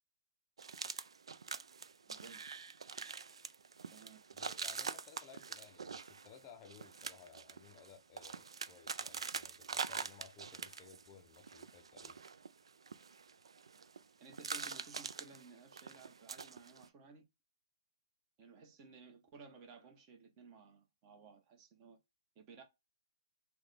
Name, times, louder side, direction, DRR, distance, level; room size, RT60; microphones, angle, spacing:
sound 1, 0.6-11.1 11.3-14.0 14.3-16.9, right 5 dB, 80° right, 0.4 m, -45 dB
voice 1, 2.0-2.4 3.9-4.2 14.2-17.2 18.4-22.0 22.3-22.6, right 4 dB, 30° right, 1.0 m, -57 dB
voice 2, 4.3-12.2, left 7 dB, 25° left, 0.5 m, -59 dB
3.6 x 2.2 x 3.3 m
hypercardioid pair, 150°, 3 cm